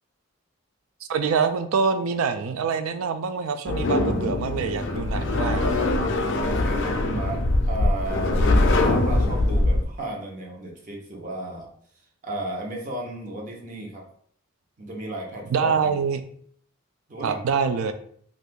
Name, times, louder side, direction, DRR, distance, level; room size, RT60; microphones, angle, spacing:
voice 1, 1.1-5.7 15.5-16.2 17.2-17.9, right 5 dB, 90° right, 9 dB, 0.4 m, -25 dB
sound 1, 3.7-9.8, left 2 dB, 60° left, 0.4 m, -22 dB
voice 2, 6.4-8.5 8.7-11.7 12.2-14.0 14.8-16.0 17.1-17.4, right 1 dB, 40° right, 0 dB, 0.7 m, -34 dB
2.6 x 2.4 x 3.6 m, 0.62 s
head